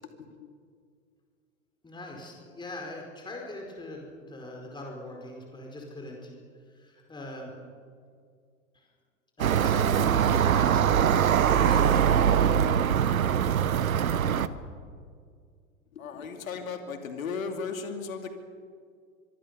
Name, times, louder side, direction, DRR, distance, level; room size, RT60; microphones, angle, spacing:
voice 1, 1.8-6.3 6.7-7.5 8.7-8.9 9.4-12.7, left 2 dB, 10° left, 0 dB, 4.8 m, -41 dB
sound 1, 9.4-14.5, right 8 dB, 75° right, 1.2 m, -22 dB
voice 2, 15.9-18.3, left 5 dB, 75° left, 5 dB, 2.7 m, -36 dB
25.0 x 24.0 x 6.9 m, 2.2 s
hypercardioid pair, 100°, 41 cm